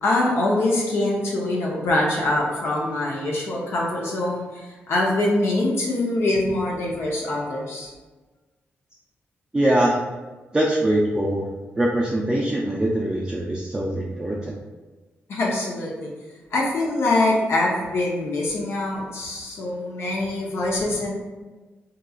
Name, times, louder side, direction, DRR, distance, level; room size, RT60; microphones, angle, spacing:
voice 1, 0.0-7.9 15.3-16.1 16.5-21.1, left 2 dB, 70° left, -3 dB, 0.7 m, -24 dB
voice 2, 9.5-10.0 10.5-11.5 11.8-14.5, right 1 dB, 15° right, -4 dB, 0.4 m, -22 dB
3.8 x 2.8 x 2.3 m, 1.2 s
cardioid pair, 105°, 4 cm